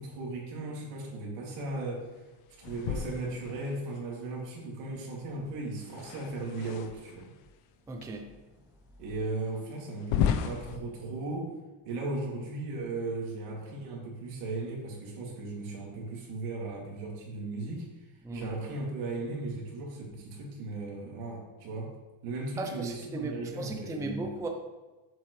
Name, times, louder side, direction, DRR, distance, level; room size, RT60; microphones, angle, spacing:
voice 1, 0.0-2.1 2.6-7.3 9.0-11.5 11.8-17.9 18.3-21.9 22.2-24.3, right 2 dB, 80° right, -3 dB, 2.7 m, -37 dB
sound 1, 2.6-4.0 5.8-7.3 8.0-8.1 8.7-8.8 9.9-10.8, left 9 dB, 85° left, 0.8 m, -33 dB
voice 2, 7.9-8.3 18.2-18.5 22.6-24.5, right 2 dB, 5° right, 3 dB, 0.5 m, -36 dB
7.6 x 7.5 x 3.2 m, 1.2 s
cardioid pair, 150°, 50 cm